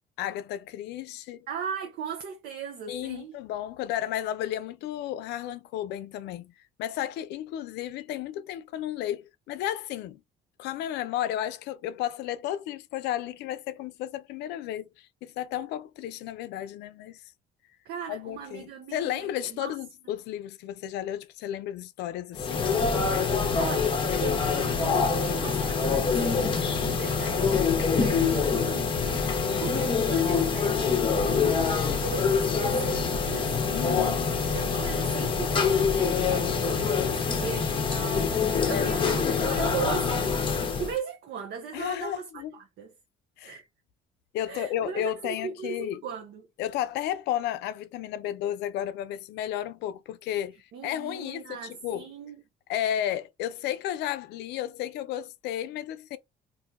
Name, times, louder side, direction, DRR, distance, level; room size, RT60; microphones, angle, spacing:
voice 1, 0.2-1.5 2.9-6.5 6.8-10.2 10.6-17.2 18.1-22.7 33.7-34.8 38.7-39.5 41.7-42.5 43.4-43.6 44.3-46.0 46.6-50.6 50.8-52.0 52.7-56.2, left 11 dB, 85° left, 0.5 m, -33 dB
voice 2, 1.5-3.4 17.8-19.7 23.2-33.9 34.2-40.4 40.8-42.9 43.4-43.7 44.5-46.4 50.7-52.4, right 7 dB, 65° right, 0.7 m, -38 dB
sound 1, 22.3-41.0, left 5 dB, 30° left, 0.7 m, -25 dB
2.6 x 2.2 x 4.0 m
cardioid pair, 110°, 17 cm